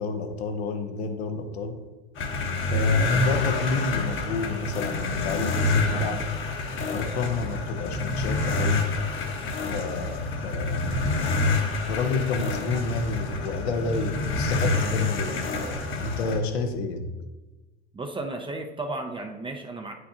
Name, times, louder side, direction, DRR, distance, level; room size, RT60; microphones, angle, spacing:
voice 1, 0.0-1.9 2.7-6.2 6.9-8.9 9.7-11.3 11.9-15.5 16.0-17.1, left 3 dB, 75° left, 7 dB, 0.9 m, -30 dB
sound 1, 2.2-16.4, left 3 dB, 40° left, 1.1 m, -27 dB
voice 2, 17.9-19.9, right 2 dB, 15° right, 4 dB, 0.6 m, -34 dB
8.9 x 5.0 x 2.8 m, 1.2 s
hypercardioid pair, 80°, 32 cm